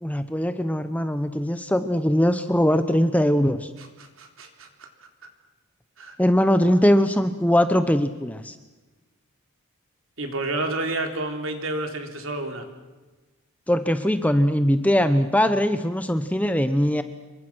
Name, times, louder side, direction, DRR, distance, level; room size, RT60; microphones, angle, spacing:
voice 1, 0.0-3.7 6.2-8.5 13.7-17.0, equal, 5° left, 10 dB, 0.9 m, -21 dB
voice 2, 3.8-4.9 6.0-6.2 10.2-12.7, right 2 dB, 60° right, 4 dB, 3.7 m, -30 dB
27.5 x 23.5 x 6.3 m, 1.2 s
head